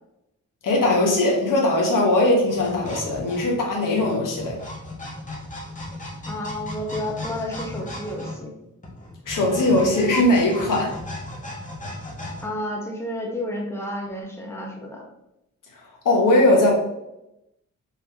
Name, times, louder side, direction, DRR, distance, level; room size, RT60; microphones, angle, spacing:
voice 1, 0.6-4.6 9.3-11.0 15.7-15.8 16.0-16.7, left 1 dB, 85° left, -2 dB, 1.4 m, -20 dB
sound 1, 2.5-12.4, left 1 dB, 25° left, 1.4 m, -36 dB
voice 2, 6.3-8.5 12.4-15.0, left 1 dB, 10° left, -1 dB, 1.2 m, -31 dB
5.5 x 3.2 x 3.0 m, 0.87 s
cardioid pair, 75°, 31 cm